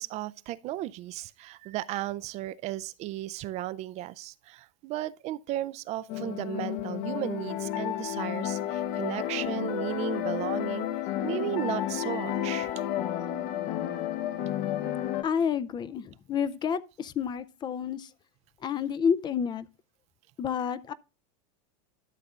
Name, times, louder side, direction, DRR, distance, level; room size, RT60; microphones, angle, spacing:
voice 1, 0.0-10.9 11.2-12.7, right 15 dB, 40° right, 0.4 m, -35 dB
sound 1, 6.1-15.2, left 12 dB, 60° left, 1.0 m, -31 dB
voice 2, 15.2-18.1 18.6-19.7 20.4-20.9, left 7 dB, 25° left, 0.4 m, -29 dB
12.5 x 6.7 x 2.4 m
supercardioid pair, 130°, 18 cm